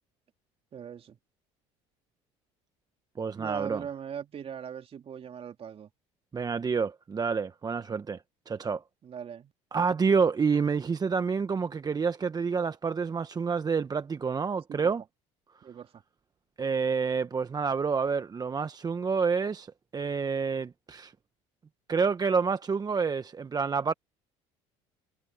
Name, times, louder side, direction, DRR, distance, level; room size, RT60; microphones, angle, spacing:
voice 1, 0.7-1.2 3.4-5.9 9.0-9.5 14.7-14.9 15.6-16.0, right 8 dB, 45° right, 3.3 m, -40 dB
voice 2, 3.2-3.8 6.3-8.2 8.5-8.8 9.7-15.0 16.6-21.1 21.9-23.9, right 5 dB, 25° right, 1.0 m, -28 dB
supercardioid pair, 80°, 14 cm